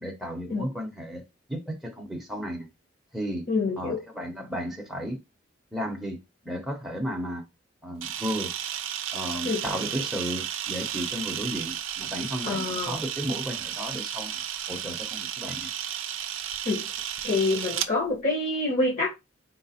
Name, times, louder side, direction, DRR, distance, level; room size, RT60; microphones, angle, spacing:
voice 1, 0.0-1.2 1.5-2.7 3.1-3.5 3.8-5.2 5.7-6.2 6.4-7.4 7.8-8.5 9.1-14.4 14.7-15.7, equal, ahead, 0.7 m, -33 dB
voice 2, 3.5-4.0 9.4-9.6 12.4-13.0 16.6-16.8 17.2-19.1, left 3 dB, 40° left, 1.0 m, -26 dB
Camera, 8.0-17.9, right 10 dB, 85° right, 0.4 m, -33 dB
4.0 x 2.1 x 4.1 m
head